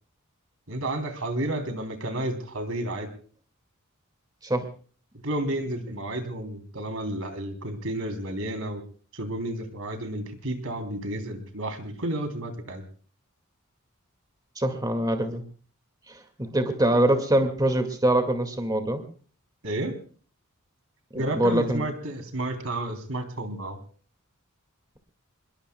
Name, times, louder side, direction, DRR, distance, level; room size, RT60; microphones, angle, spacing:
voice 1, 0.7-3.1 5.2-8.8 9.1-12.8 19.6-20.0 21.1-23.8, right 1 dB, 70° right, 7 dB, 3.3 m, -31 dB
voice 2, 14.6-15.4 16.1-19.0 21.1-21.8, right 1 dB, 20° right, 7 dB, 2.0 m, -24 dB
26.0 x 22.0 x 2.3 m, 0.42 s
head